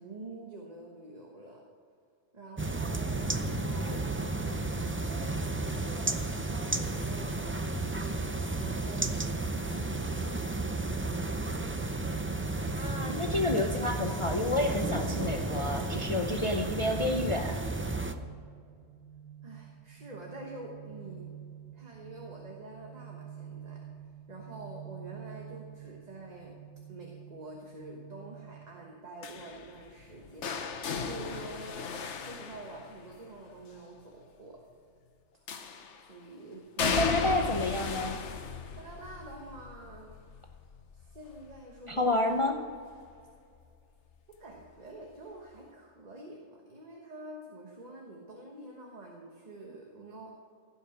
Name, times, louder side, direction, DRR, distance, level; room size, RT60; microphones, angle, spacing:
voice 1, 0.0-1.6 2.3-11.0 19.4-21.2 21.7-23.8 24.3-26.6 26.9-34.6 36.1-37.2 38.7-40.1 40.9-42.2 44.4-50.4, right 2 dB, 35° right, -1 dB, 1.3 m, -47 dB
sound 1, 2.6-18.1, right 2 dB, 20° right, 0.3 m, -33 dB
voice 2, 12.8-17.5 36.8-38.2 41.9-42.6, left 2 dB, 35° left, 3 dB, 0.6 m, -29 dB
sound 2, 16.5-29.5, right 9 dB, 65° right, 1.4 m, -48 dB
sound 3, 29.2-33.3 35.5-36.1 36.8-42.6 42.9-43.4 44.6-44.7, left 5 dB, 70° left, 1.2 m, -36 dB
16.0 x 5.7 x 7.2 m, 2.3 s
omnidirectional pair, 1.2 m